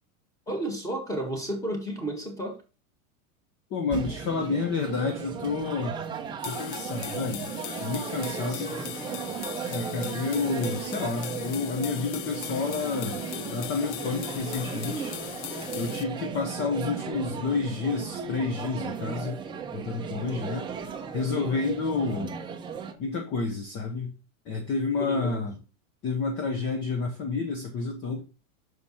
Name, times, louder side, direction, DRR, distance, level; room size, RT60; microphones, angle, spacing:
voice 1, 0.5-2.6 8.4-9.0 21.3-21.6 25.0-25.5, right 1 dB, 10° left, 3 dB, 1.8 m, -33 dB
voice 2, 3.7-6.0 6.4-7.5 7.8-8.8 9.7-13.2 13.5-15.2 15.7-19.4 19.7-20.7 21.1-22.4 23.0-24.1 24.5-25.6 26.0-28.2, left 4 dB, 30° left, 4 dB, 0.9 m, -30 dB
sound 1, 3.9-22.9, right 6 dB, 10° right, 0.6 m, -36 dB
sound 2, 6.4-16.0, left 12 dB, 50° left, 0.6 m, -39 dB
6.4 x 5.1 x 4.2 m, 0.31 s
supercardioid pair, 145°, 43 cm